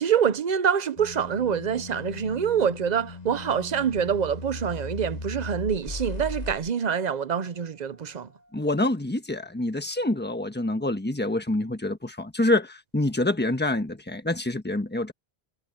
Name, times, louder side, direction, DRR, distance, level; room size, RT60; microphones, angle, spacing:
voice 1, 0.0-8.3, right 7 dB, 50° right, 0.8 m, -26 dB
sound 1, 1.0-6.7, left 2 dB, 40° left, 1.6 m, -38 dB
voice 2, 8.5-15.1, left 2 dB, 10° left, 1.3 m, -26 dB
omnidirectional pair, 1.0 m